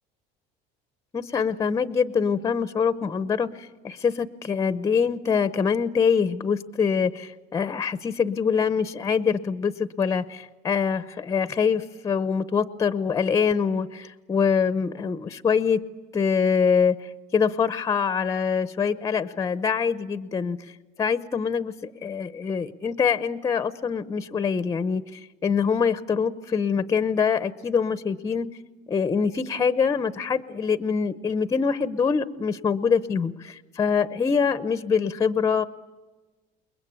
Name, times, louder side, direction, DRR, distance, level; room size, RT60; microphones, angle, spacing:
voice 1, 1.1-15.8 16.1-20.6 21.0-28.5 28.9-35.6, left 6 dB, 20° left, 14 dB, 0.8 m, -24 dB
29.0 x 21.5 x 8.7 m, 1.2 s
cardioid pair, 150°, 17 cm